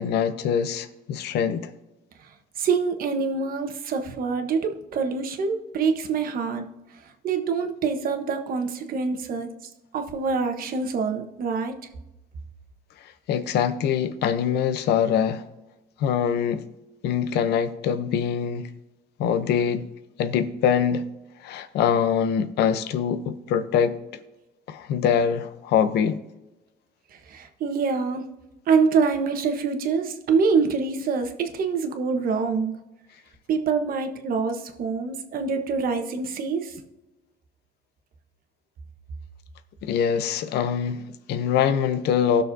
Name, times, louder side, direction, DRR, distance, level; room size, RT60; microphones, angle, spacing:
voice 1, 0.0-1.7 13.3-15.4 16.0-16.6 17.0-18.7 19.2-19.9 20.2-21.1 21.4-24.0 24.7-26.2 39.8-42.4, left 8 dB, 80° left, 0.8 m, -24 dB
voice 2, 2.6-6.6 7.2-9.5 9.9-11.7 27.3-28.3 28.7-32.7 33.5-36.7, right 5 dB, 60° right, 1.2 m, -25 dB
18.5 x 6.5 x 2.7 m
cardioid pair, 110°, 17 cm